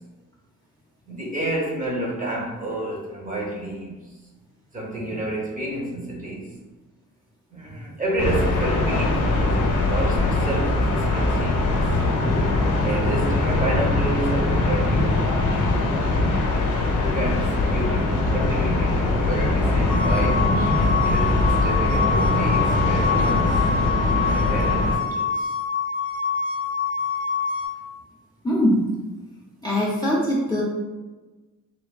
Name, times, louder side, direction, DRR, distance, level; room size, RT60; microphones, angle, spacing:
voice 1, 1.1-4.0 4.7-6.5 7.5-11.8 12.8-15.3 17.0-23.6 24.3-25.5, right 1 dB, 25° right, -2 dB, 0.7 m, -30 dB
sound 1, 8.2-25.0, left 2 dB, 75° left, 0.6 m, -22 dB
sound 2, 19.9-27.6, left 5 dB, 85° right, 0.6 m, -26 dB
voice 2, 28.4-28.9 29.6-30.6, equal, 15° left, -6 dB, 0.4 m, -22 dB
3.3 x 2.2 x 2.2 m, 1.2 s
cardioid pair, 100°, 32 cm